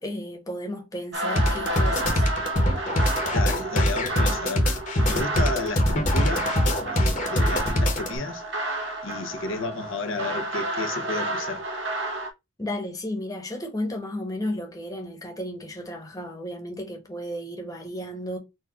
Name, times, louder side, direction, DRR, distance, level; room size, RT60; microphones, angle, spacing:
voice 1, 0.0-2.2 12.6-18.4, left 1 dB, 15° left, 1.2 m, -33 dB
sound 1, 1.1-12.3, right 1 dB, 60° right, 1.3 m, -31 dB
sound 2, 1.4-8.2, left 1 dB, 35° left, 1.2 m, -23 dB
voice 2, 3.3-8.4 9.0-11.6, left 3 dB, 70° left, 0.8 m, -32 dB
4.4 x 2.5 x 4.2 m
head